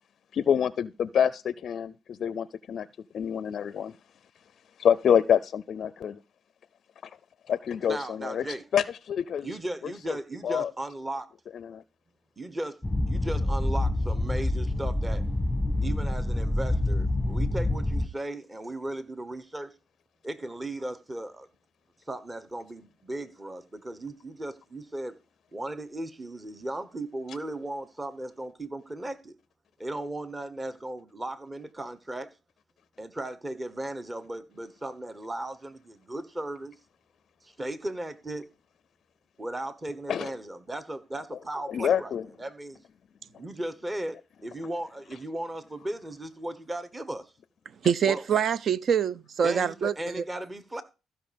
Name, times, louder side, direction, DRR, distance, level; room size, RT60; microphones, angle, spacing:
voice 1, 0.3-2.9 3.1-4.0 4.8-6.2 7.0-7.1 7.5-9.5 9.8-10.2 10.4-10.7 11.5-11.8 40.1-40.3 41.7-42.3, left 8 dB, 60° left, 0.4 m, -27 dB
voice 2, 7.9-8.6 9.4-11.3 12.4-12.8 13.1-15.2 15.8-19.7 20.2-21.5 22.1-25.2 25.5-29.4 29.8-32.3 33.0-36.7 37.4-38.5 39.4-42.1 42.4-42.8 43.4-47.2 48.0-48.2 49.4-50.8, right 1 dB, 20° right, 1.1 m, -36 dB
sound 1, 12.8-18.1, left 1 dB, 5° left, 1.1 m, -27 dB
voice 3, 47.8-50.2, right 7 dB, 55° right, 0.5 m, -25 dB
14.5 x 5.5 x 5.2 m
cardioid pair, 90°, 0 cm